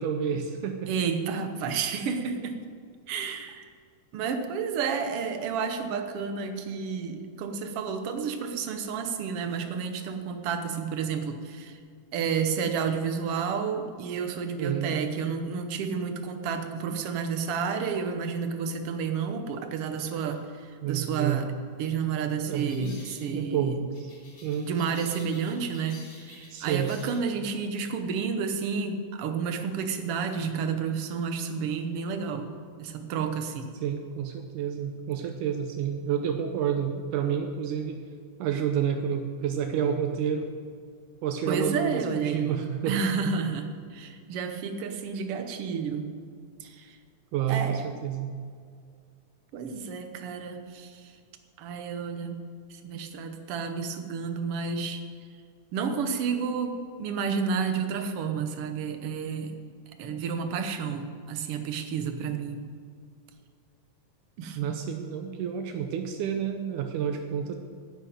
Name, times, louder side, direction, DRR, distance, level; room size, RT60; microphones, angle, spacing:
voice 1, 0.0-0.9 14.6-14.9 20.8-21.5 22.5-23.0 23.3-24.1 24.4-24.7 26.5-26.9 33.8-38.0 38.4-40.5 41.2-43.0 47.3-48.3 64.6-67.5, right 8 dB, 80° right, 5 dB, 2.3 m, -29 dB
voice 2, 0.9-2.6 3.1-3.7 4.1-11.8 12.1-21.5 21.8-23.8 24.6-32.5 32.8-33.7 41.5-46.1 46.6-47.0 47.5-47.9 49.5-51.2 51.6-52.4 52.7-55.0 55.7-59.5 60.0-62.6 64.4-64.7, right 6 dB, 60° right, 7 dB, 1.6 m, -31 dB
sound 1, 20.2-20.4 22.6-23.2 23.9-27.3, left 2 dB, 45° left, 3.6 m, -51 dB
10.0 x 8.5 x 9.0 m, 2.1 s
omnidirectional pair, 3.6 m